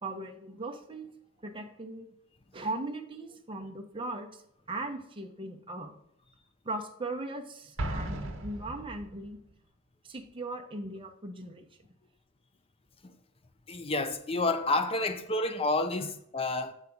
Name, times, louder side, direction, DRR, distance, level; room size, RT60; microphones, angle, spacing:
voice 1, 0.0-1.1 1.4-2.1 2.5-4.3 4.7-5.9 6.6-9.4 10.0-11.7, right 2 dB, 25° right, 0.9 m, -38 dB
Explosion, 7.8-9.4, right 1 dB, 60° right, 1.1 m, -36 dB
voice 2, 13.7-16.7, left 2 dB, 25° left, 0.6 m, -29 dB
8.2 x 3.6 x 5.2 m
head